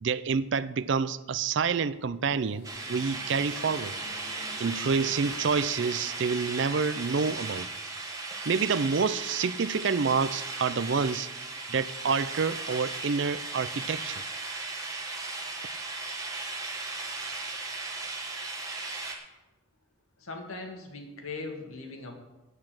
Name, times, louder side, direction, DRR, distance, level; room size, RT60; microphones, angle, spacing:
voice 1, 0.0-3.9 4.6-7.7 8.5-11.3 11.7-14.2, right 5 dB, 55° right, 0.4 m, -28 dB
sound 1, 2.2-7.4, left 1 dB, 50° left, 1.4 m, -51 dB
sound 2, 2.6-19.2, right 3 dB, 15° right, 1.2 m, -37 dB
voice 2, 20.2-22.1, left 3 dB, 80° left, 2.0 m, -39 dB
8.7 x 8.2 x 7.5 m
head